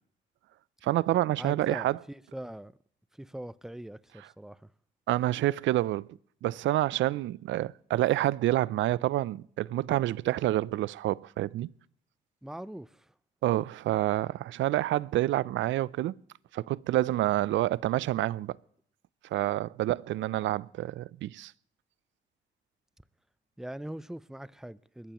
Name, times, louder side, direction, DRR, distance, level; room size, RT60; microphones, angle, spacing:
voice 1, 0.8-2.0 4.2-4.3 5.1-6.1 6.4-11.7 13.4-16.2 16.5-18.6 19.3-21.5, right 15 dB, 70° right, 0.4 m, -28 dB
voice 2, 1.4-2.7 3.2-4.7 12.4-13.0 23.6-25.1, right 1 dB, ahead, 0.4 m, -41 dB
21.0 x 14.0 x 3.0 m
cardioid pair, 90°, 20 cm